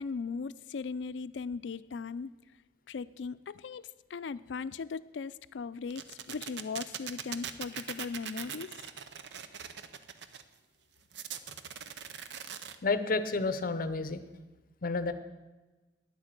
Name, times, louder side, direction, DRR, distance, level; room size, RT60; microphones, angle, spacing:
voice 1, 0.0-2.3 2.9-8.7, left 5 dB, 85° left, 16 dB, 0.4 m, -38 dB
sound 1, 5.9-10.4 11.1-12.8, right 8 dB, 70° right, 0.7 m, -41 dB
voice 2, 12.8-14.2 14.8-15.1, left 3 dB, 55° left, 11 dB, 0.8 m, -30 dB
9.8 x 8.1 x 8.0 m, 1.2 s
head